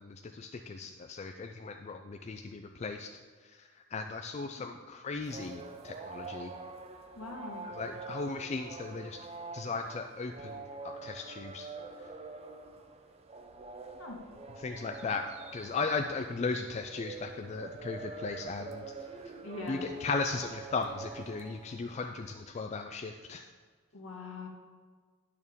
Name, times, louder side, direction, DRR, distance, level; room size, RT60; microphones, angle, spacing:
voice 1, 0.0-3.1 3.9-6.5 7.8-9.2 9.5-11.7 14.6-15.2 15.5-18.8 19.7-23.4, left 4 dB, 30° left, 5 dB, 0.3 m, -36 dB
sound 1, 5.2-22.2, right 3 dB, 30° right, 0.5 m, -45 dB
voice 2, 7.1-7.7 14.0-14.2 19.4-19.9 23.9-24.5, left 3 dB, 70° left, 0 dB, 1.6 m, -42 dB
10.5 x 6.5 x 3.6 m, 1.5 s
head